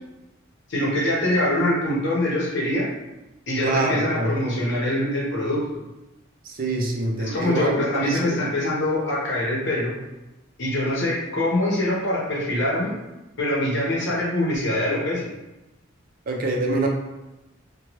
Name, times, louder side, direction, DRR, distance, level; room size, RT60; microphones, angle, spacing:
voice 1, 0.7-2.9 3.5-5.6 7.2-9.9 10.6-12.9 13.4-15.3, left 1 dB, 60° left, -6 dB, 0.8 m, -24 dB
voice 2, 3.6-4.3 6.6-8.4 16.3-16.9, right 2 dB, 45° right, 0 dB, 0.5 m, -25 dB
3.0 x 2.2 x 2.9 m, 1.0 s
head